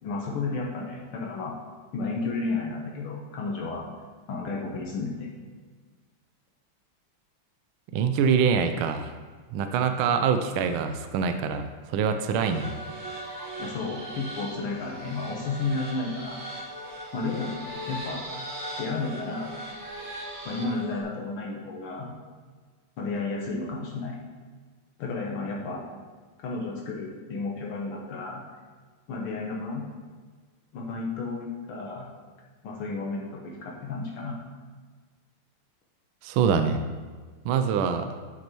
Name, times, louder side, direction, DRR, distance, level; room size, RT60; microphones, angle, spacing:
voice 1, 0.0-1.5 1.9-3.9 4.3-5.3 13.6-16.4 17.1-18.2 18.8-19.5 20.5-22.1 23.0-24.2 25.0-25.8 26.4-28.4 29.1-29.9 30.7-32.1 32.6-34.4, left 3 dB, 80° left, -2 dB, 1.9 m, -32 dB
voice 2, 7.9-9.1 9.5-12.7 36.2-36.8 37.4-38.1, right 6 dB, 75° right, 8 dB, 1.4 m, -24 dB
sound 1, 12.3-21.0, right 1 dB, 60° right, 2.5 m, -39 dB
11.5 x 6.1 x 3.0 m, 1.5 s
omnidirectional pair, 2.4 m